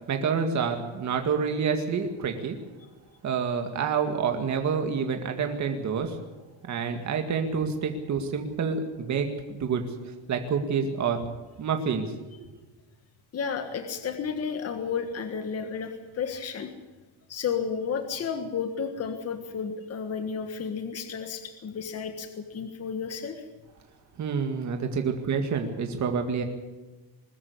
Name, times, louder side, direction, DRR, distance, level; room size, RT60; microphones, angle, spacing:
voice 1, 0.1-2.6 3.2-6.2 6.7-9.8 10.3-11.2 11.6-12.1 24.2-26.4, right 6 dB, 40° right, 5 dB, 2.0 m, -28 dB
voice 2, 13.3-16.7 17.3-23.4, left 6 dB, 35° left, 7 dB, 1.6 m, -32 dB
21.5 x 13.5 x 9.6 m, 1.2 s
cardioid pair, 165°, 43 cm